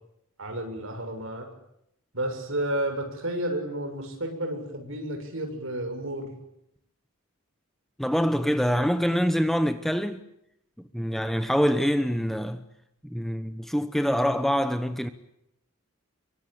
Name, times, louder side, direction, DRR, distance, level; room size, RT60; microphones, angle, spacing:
voice 1, 0.4-1.5 2.1-6.3, right 1 dB, 60° right, 7.0 m, -31 dB
voice 2, 8.0-10.2 10.9-12.6 13.0-15.1, equal, ahead, 1.0 m, -25 dB
27.0 x 24.0 x 9.0 m
head